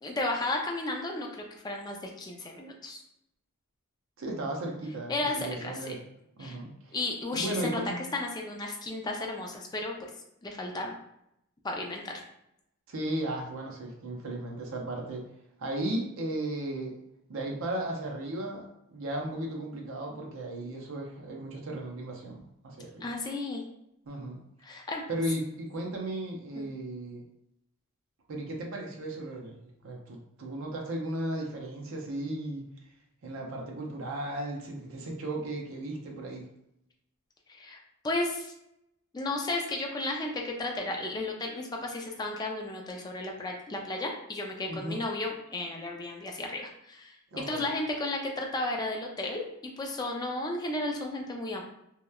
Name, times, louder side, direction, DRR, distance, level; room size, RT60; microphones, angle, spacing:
voice 1, 0.0-3.0 5.1-6.0 6.4-6.6 6.9-7.8 8.1-10.1 10.4-11.0 11.6-12.1 23.0-23.6 24.6-25.0 26.6-26.7 37.5-37.8 38.0-38.5 39.1-49.5 49.8-51.6, left 2 dB, 20° left, 1 dB, 0.3 m, -33 dB
voice 2, 4.2-6.0 6.4-7.0 7.3-7.9 12.9-15.2 15.6-17.0 17.3-23.1 24.1-24.4 25.1-27.2 28.3-32.7 33.2-36.5 44.7-45.0 47.3-47.6, right 1 dB, 65° right, 0 dB, 0.5 m, -35 dB
2.8 x 2.1 x 2.2 m, 0.81 s
head